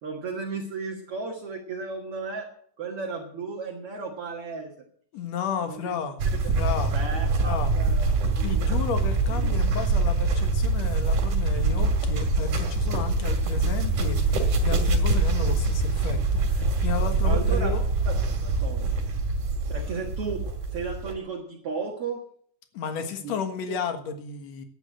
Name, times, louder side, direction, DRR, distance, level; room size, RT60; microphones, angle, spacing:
voice 1, 0.0-2.5 2.8-4.7 5.6-6.0 6.9-8.1 8.4-8.8 9.4-9.5 17.2-17.7 18.1-18.2 18.4-19.0 19.7-20.4 20.7-22.2 23.2-23.3 23.7-23.8, right 4 dB, 50° right, 0 dB, 2.2 m, -34 dB
voice 2, 5.1-6.2 6.5-7.0 7.4-7.7 8.4-17.8 22.7-24.6, left 6 dB, 60° left, 7 dB, 2.5 m, -33 dB
sound 1, 6.2-21.1, right 3 dB, 65° right, 3.5 m, -24 dB
12.5 x 9.0 x 7.7 m, 0.62 s
omnidirectional pair, 3.8 m